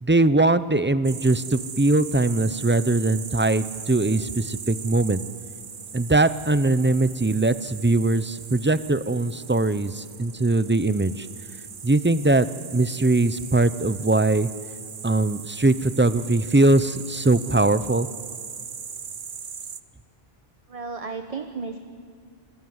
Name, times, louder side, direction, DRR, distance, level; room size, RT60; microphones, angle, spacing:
voice 1, 0.0-5.2 5.9-11.3 11.8-12.5 12.7-14.5 15.0-18.1, right 2 dB, 15° right, 14 dB, 0.5 m, -21 dB
sound 1, 1.0-19.8, right 6 dB, 55° right, 1.1 m, -39 dB
voice 2, 20.7-21.8, right 4 dB, 35° right, 7 dB, 1.2 m, -33 dB
27.0 x 22.5 x 9.5 m, 2.1 s
omnidirectional pair, 1.1 m